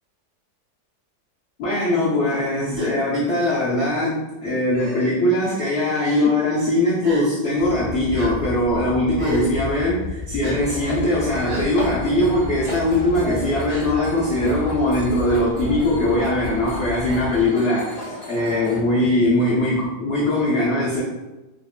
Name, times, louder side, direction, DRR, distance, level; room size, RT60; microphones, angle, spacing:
voice 1, 1.6-21.0, left 1 dB, 80° left, -7 dB, 0.6 m, -21 dB
Gasp, 2.7-2.9 3.8-3.9 4.7-5.1 5.9-6.3 7.0-7.3 8.1-8.3 9.1-9.5 10.4-10.6 11.4-11.7 12.6-12.8 13.7-13.9, right 2 dB, 55° right, 1.1 m, -30 dB
sound 1, 7.6-17.5, left 3 dB, 70° right, 2.0 m, -33 dB
sound 2, 10.6-18.8, left 1 dB, 30° left, 1.1 m, -36 dB
3.8 x 2.1 x 2.3 m, 1.1 s
omnidirectional pair, 2.0 m